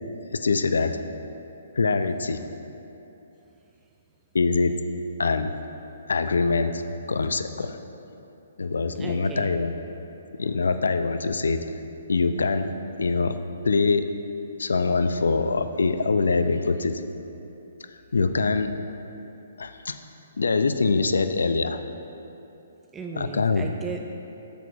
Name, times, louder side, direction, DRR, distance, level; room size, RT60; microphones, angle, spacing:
voice 1, 0.3-1.0 1.7-2.4 4.3-4.8 5.2-5.5 6.1-7.8 8.6-9.7 10.4-11.6 12.1-12.7 13.0-13.4 13.6-14.1 14.6-17.0 18.1-18.7 19.6-20.0 20.4-21.8 23.2-23.7, left 4 dB, 75° left, 10 dB, 0.3 m, -24 dB
voice 2, 3.6-3.9 8.9-9.7 22.9-24.0, right 4 dB, 15° right, 2 dB, 0.3 m, -37 dB
7.9 x 6.7 x 2.4 m, 2.9 s
figure-of-eight pair, 130°, 0 cm